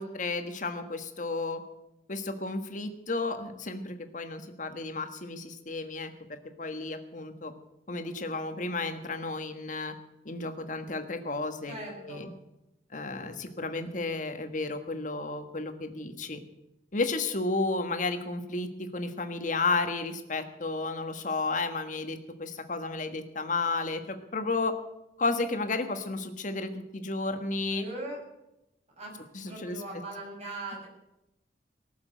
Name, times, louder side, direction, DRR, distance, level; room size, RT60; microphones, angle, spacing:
voice 1, 0.0-1.6 2.1-7.5 7.9-9.9 10.2-11.7 12.0-12.3 12.9-16.4 16.9-24.7 25.2-27.8 29.3-29.8, left 3 dB, 45° left, 7 dB, 1.4 m, -32 dB
voice 2, 11.7-12.3 27.7-28.2 29.0-29.2 29.5-30.9, right 2 dB, 40° right, -2 dB, 6.0 m, -40 dB
18.5 x 7.3 x 9.2 m, 0.91 s
head